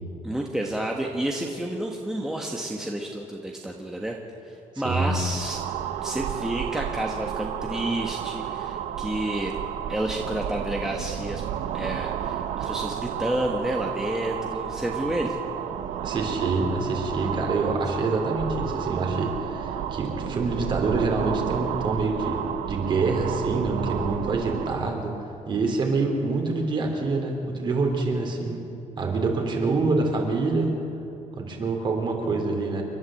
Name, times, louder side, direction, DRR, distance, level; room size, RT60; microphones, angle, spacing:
voice 1, 0.2-4.1 4.4-5.6 6.0-9.5 9.9-11.4 11.7-15.4, right 1 dB, 5° right, 0 dB, 1.4 m, -30 dB
voice 2, 4.8-5.2 16.0-25.1 25.5-28.6 29.0-30.7 31.4-32.8, right 3 dB, 40° right, 2 dB, 3.6 m, -26 dB
sound 1, 5.1-25.0, right 10 dB, 80° right, 0.9 m, -32 dB
29.0 x 12.0 x 7.7 m, 2.8 s
cardioid pair, 150°, 13 cm